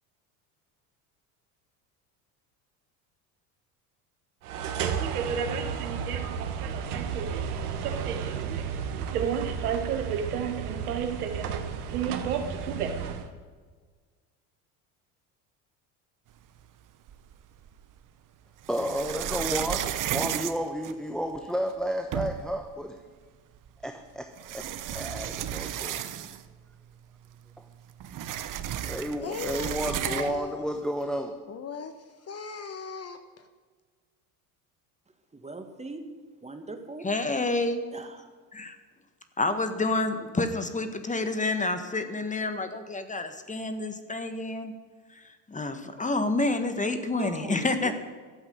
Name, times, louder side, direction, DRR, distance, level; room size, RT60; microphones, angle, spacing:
sound 1, 4.4-13.3, right 7 dB, 85° right, 1.4 m, -30 dB
sound 2, 17.1-17.8 18.6-21.4 21.8-21.9 22.1-22.6 23.7-23.8 24.4-26.6 26.9-27.0 27.3-30.5, right 10 dB, 45° right, 1.0 m, -33 dB
voice 1, 18.7-23.0 23.8-26.0 27.6-27.7 28.8-31.3, equal, ahead, 5 dB, 1.1 m, -32 dB
voice 2, 29.2-30.6 31.5-33.5, left 5 dB, 35° left, 9 dB, 1.2 m, -38 dB
voice 3, 35.3-36.0 36.4-37.1 37.9-38.3 47.1-47.9, right 2 dB, 15° right, 7 dB, 1.8 m, -40 dB
voice 4, 37.0-37.8 38.5-38.7 39.4-44.7 45.1-47.9, left 2 dB, 15° left, 9 dB, 1.5 m, -29 dB
12.5 x 7.9 x 9.5 m, 1.5 s
hypercardioid pair, 80°, 43 cm